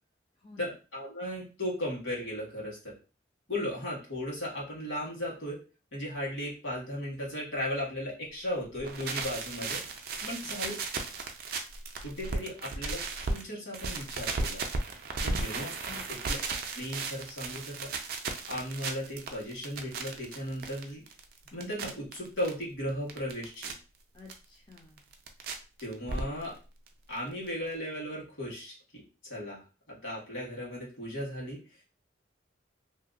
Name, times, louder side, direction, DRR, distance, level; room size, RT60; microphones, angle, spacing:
voice 1, 0.6-2.9 3.5-5.6 5.9-9.8 10.3-10.7 12.0-14.6 15.2-15.7 16.1-16.4 16.7-17.9 18.5-21.0 21.5-23.7 25.8-26.5 27.1-29.6 29.9-31.6, left 1 dB, 70° left, -4 dB, 1.4 m, -36 dB
sound 1, 8.7-13.4 13.7-22.5 22.9-23.7 24.3-24.4 24.8-25.5 25.8-26.6 26.9-27.0 27.2-27.3 27.5-27.6, right 3 dB, 50° right, 0.4 m, -35 dB
voice 2, 10.2-10.6 15.1-16.1 24.1-25.0, left 4 dB, 25° left, -2 dB, 0.4 m, -50 dB
2.7 x 2.1 x 2.5 m, 0.33 s
head